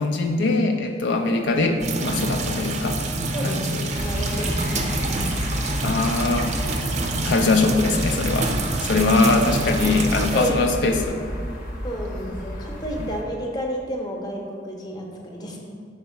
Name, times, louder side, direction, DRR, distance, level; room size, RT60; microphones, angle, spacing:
voice 1, 0.0-3.0 3.4-3.9 5.8-6.9 7.2-11.2 13.0-13.1, left 3 dB, 80° left, 4 dB, 0.4 m, -22 dB
sound 1, 1.8-10.5, right 2 dB, 40° right, 0.5 m, -27 dB
voice 2, 3.3-5.3 8.9-9.5 10.3-10.6 11.0-11.1 11.8-15.6, equal, 25° left, 0 dB, 0.8 m, -31 dB
sound 2, 3.9-13.2, equal, 55° left, 0.8 m, -31 dB
4.4 x 4.0 x 5.6 m, 2.2 s
head